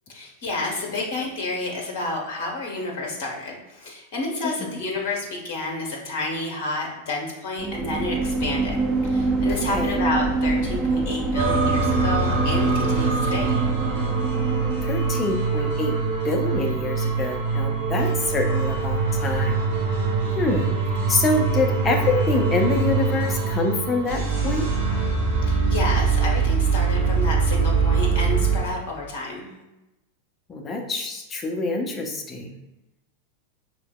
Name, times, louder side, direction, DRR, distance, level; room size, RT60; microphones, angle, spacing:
voice 1, 0.1-8.8 9.0-13.5 25.4-29.5, left 2 dB, 50° left, 0 dB, 0.9 m, -30 dB
voice 2, 4.4-4.8 9.7-10.0 14.8-15.9 16.2-19.6 20.4-20.7 21.1-24.6 30.5-32.5, left 3 dB, 20° left, 2 dB, 0.7 m, -26 dB
sound 1, 7.6-15.4, right 3 dB, 15° right, 0.5 m, -25 dB
sound 2, 11.3-28.6, right 4 dB, 50° right, 1.0 m, -23 dB
4.7 x 3.0 x 2.3 m, 0.96 s
figure-of-eight pair, 90°, 0 cm